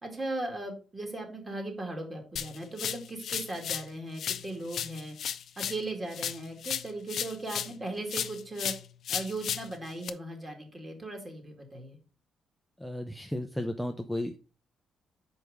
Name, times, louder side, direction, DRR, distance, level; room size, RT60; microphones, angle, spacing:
voice 1, 0.0-5.2 5.6-8.7 9.1-12.0, right 2 dB, 25° right, 2 dB, 2.3 m, -38 dB
sound 1, 2.4-3.9 4.2-7.8 8.1-10.1, left 9 dB, 65° left, 0.5 m, -35 dB
voice 2, 12.8-14.4, left 1 dB, ahead, 5 dB, 0.6 m, -34 dB
5.3 x 4.7 x 4.9 m, 0.35 s
cardioid pair, 90°, 0 cm